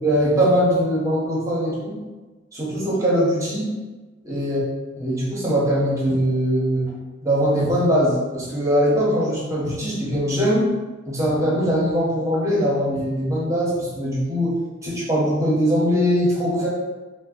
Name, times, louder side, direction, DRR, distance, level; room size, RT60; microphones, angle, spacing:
voice 1, 0.0-2.0 2.5-3.7 4.2-4.6 5.0-6.9 7.2-10.7 11.1-16.7, equal, 15° right, -5 dB, 0.8 m, -21 dB
3.7 x 2.1 x 2.4 m, 1.2 s
head